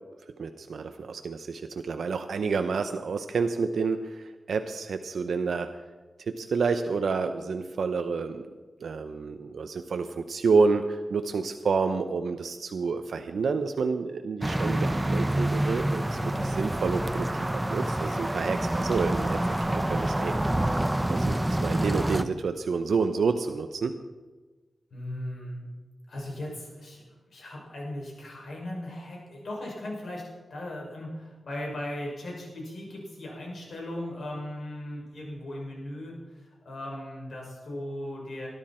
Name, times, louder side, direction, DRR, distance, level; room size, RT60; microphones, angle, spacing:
voice 1, 0.4-5.7 6.2-8.5 8.8-17.3 17.5-20.3 21.1-24.0, right 4 dB, 85° right, 7 dB, 0.7 m, -29 dB
sound 1, 14.4-22.2, right 1 dB, 15° right, 0.6 m, -27 dB
voice 2, 24.9-25.7 26.1-38.5, left 1 dB, 70° left, -2 dB, 6.2 m, -38 dB
20.5 x 12.0 x 4.4 m, 1.3 s
wide cardioid pair, 115°, 0 cm